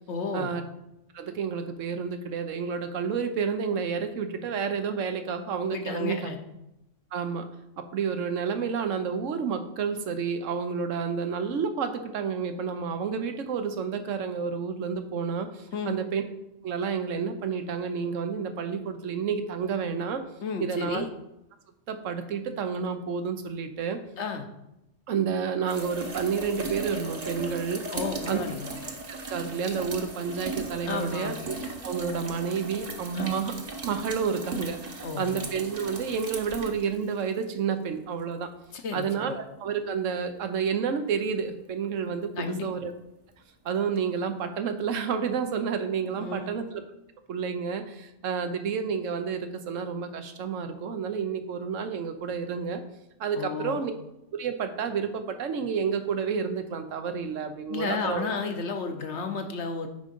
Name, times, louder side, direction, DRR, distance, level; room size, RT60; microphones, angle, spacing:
voice 1, 0.1-0.5 5.7-6.4 15.7-16.0 20.4-21.1 24.2-24.4 27.9-28.7 30.8-31.3 33.1-33.3 35.0-35.5 38.7-39.4 42.4-42.6 46.2-46.6 53.3-53.9 57.7-59.9, left 4 dB, 65° left, 6 dB, 1.1 m, -32 dB
voice 2, 1.1-6.3 7.1-7.5 7.8-16.2 16.6-20.2 20.6-21.1 21.9-24.0 25.1-27.8 28.3-28.4 29.1-31.5 31.8-33.5 33.8-38.5 38.9-42.9 43.6-46.8 47.3-52.8 53.2-53.9 54.3-58.3, right 6 dB, 85° right, 8 dB, 1.2 m, -30 dB
sound 1, 25.7-37.5 39.0-39.1 44.0-44.1, right 3 dB, 35° right, 1.0 m, -37 dB
9.2 x 3.7 x 5.3 m, 0.88 s
omnidirectional pair, 1.3 m